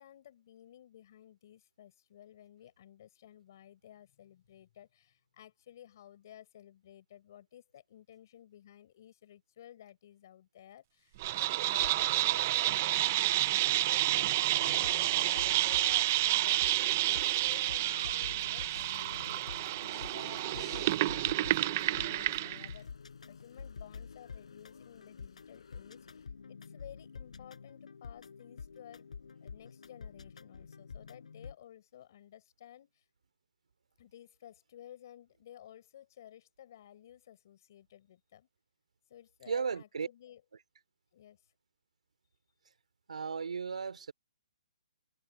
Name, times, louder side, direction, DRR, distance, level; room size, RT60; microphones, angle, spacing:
voice 1, 0.0-16.7 17.0-22.9 23.3-29.1 29.4-33.0 34.0-38.5 39.1-40.4 41.1-41.4, left 11 dB, 30° left, 4.1 m, -55 dB
sound 1, 11.2-22.7, right 15 dB, 20° right, 0.4 m, -29 dB
sound 2, 11.7-26.3, left 6 dB, 60° left, 4.5 m, -56 dB
sound 3, 14.6-31.6, left 5 dB, 80° left, 4.7 m, -48 dB
voice 2, 39.5-40.1 43.1-44.1, right 5 dB, 90° right, 2.9 m, -35 dB
hypercardioid pair, 180°, 4 cm